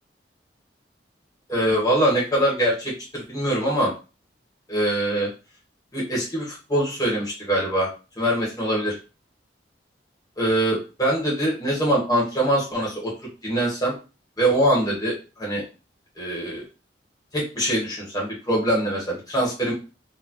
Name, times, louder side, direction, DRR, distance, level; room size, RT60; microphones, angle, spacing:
voice 1, 1.5-3.9 4.7-5.3 5.9-7.9 8.2-9.0 10.4-13.1 13.4-13.9 14.4-15.6 16.2-16.6 17.3-19.7, right 1 dB, 20° left, -5 dB, 1.3 m, -23 dB
4.3 x 2.4 x 3.0 m, 0.32 s
head